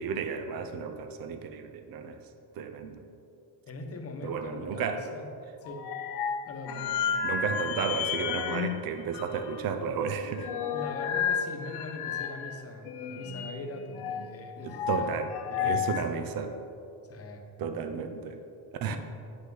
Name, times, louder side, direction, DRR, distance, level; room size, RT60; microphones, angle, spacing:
voice 1, 0.0-2.2 2.6-3.0 4.2-5.0 7.2-10.5 14.6-15.3 15.6-16.5 17.6-18.4 18.8-19.0, right 6 dB, 60° right, 7 dB, 0.7 m, -33 dB
voice 2, 3.7-5.3 5.6-5.8 6.5-7.0 7.4-7.7 10.7-15.1 15.5-16.3 17.1-17.4 18.9-19.0, left 2 dB, 35° left, 3 dB, 1.0 m, -41 dB
sound 1, 5.7-8.9 9.1-9.6 10.1-12.6 12.9-14.3 14.7-16.0, left 8 dB, 75° left, 0.7 m, -32 dB
9.8 x 5.9 x 3.9 m, 2.6 s
cardioid pair, 120°, 39 cm